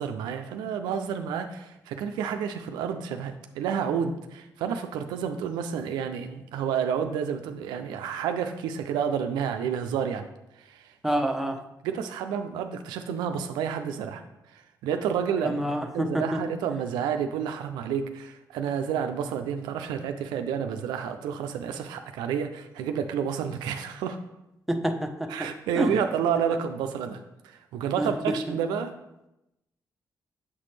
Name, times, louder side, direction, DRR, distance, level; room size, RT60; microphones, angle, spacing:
voice 1, 0.0-10.3 10.6-10.9 11.8-14.2 14.5-15.6 15.9-24.2 25.3-28.9, right 7 dB, 90° right, 7 dB, 0.4 m, -30 dB
voice 2, 11.0-11.6 15.4-16.4 24.7-25.1 25.7-25.9 28.0-28.1, right 1 dB, ahead, 3 dB, 0.8 m, -27 dB
7.3 x 4.1 x 3.2 m, 0.90 s
supercardioid pair, 55°, 7 cm